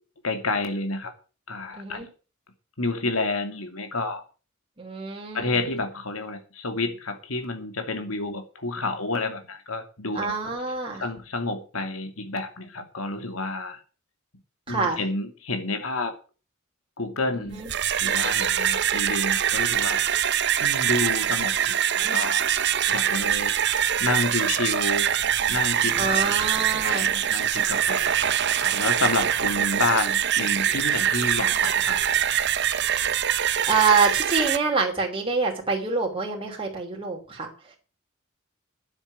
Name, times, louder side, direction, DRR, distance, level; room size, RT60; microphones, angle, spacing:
voice 1, 0.2-1.1 1.5-2.0 2.8-4.2 5.3-10.3 11.0-13.8 14.7-16.1 17.0-17.6 18.0-20.0 20.6-22.5 22.9-23.5 24.0-25.1 25.5-26.4 26.8-28.1 28.6-32.1, left 2 dB, 80° left, 6 dB, 2.7 m, -29 dB
voice 2, 1.8-2.1 4.8-5.5 10.1-11.0 14.7-15.0 17.4-17.7 22.0-22.2 26.0-27.1 32.8-33.1 33.7-37.5, right 4 dB, 25° right, 0 dB, 3.2 m, -26 dB
sound 1, 17.5-34.6, right 10 dB, 55° right, 0.9 m, -24 dB
9.7 x 8.1 x 8.9 m, 0.35 s
head